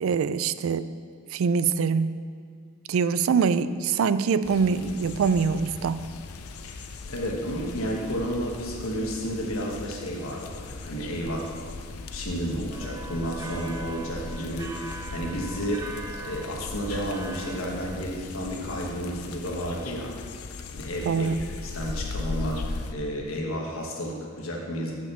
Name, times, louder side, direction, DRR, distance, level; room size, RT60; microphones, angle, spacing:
voice 1, 0.0-0.9 1.3-2.2 2.9-6.1 21.1-21.4, right 5 dB, 70° right, 14 dB, 0.3 m, -24 dB
sound 1, 4.4-22.9, left 3 dB, 90° left, 0.5 m, -38 dB
voice 2, 6.6-11.6 12.1-20.1 20.7-21.3 21.6-24.9, equal, 75° left, -1 dB, 1.2 m, -32 dB
sound 2, 12.7-17.7, right 3 dB, 15° right, 0.7 m, -41 dB
6.3 x 6.0 x 7.0 m, 2.3 s
head